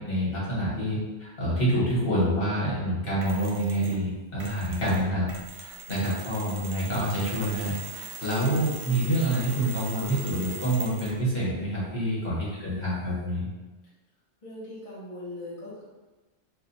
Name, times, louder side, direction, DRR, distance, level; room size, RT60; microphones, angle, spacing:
voice 1, 0.0-13.5, right 1 dB, 55° left, -8 dB, 1.3 m, -27 dB
Mechanisms, 3.2-4.0 4.4-11.3, right 5 dB, 60° right, 0.8 m, -41 dB
voice 2, 12.4-13.1 14.4-15.8, left 1 dB, 35° left, -8 dB, 0.7 m, -41 dB
2.6 x 2.1 x 4.0 m, 1.2 s
omnidirectional pair, 1.2 m